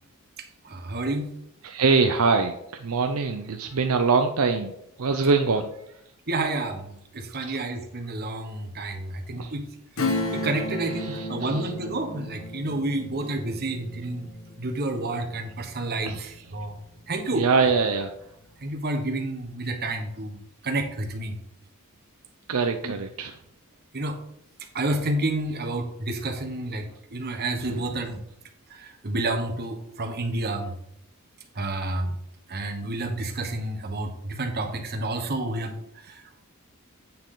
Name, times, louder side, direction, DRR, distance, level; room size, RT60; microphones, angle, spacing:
voice 1, 0.6-1.3 6.3-9.7 10.0-14.3 14.6-17.5 18.6-21.4 22.8-22.9 23.9-24.2 24.7-28.2 28.7-30.7 31.5-32.1 32.5-36.3, right 2 dB, 45° right, 4 dB, 1.3 m, -30 dB
voice 2, 1.6-4.7 5.0-5.7 7.4-7.6 9.4-9.5 11.0-11.7 16.0-16.3 17.4-18.1 22.5-23.3 27.7-27.8, right 4 dB, 75° right, 5 dB, 0.6 m, -24 dB
Acoustic guitar / Strum, 10.0-16.2 16.5-16.6, left 2 dB, 65° left, 1.1 m, -33 dB
8.6 x 6.4 x 3.8 m, 0.78 s
head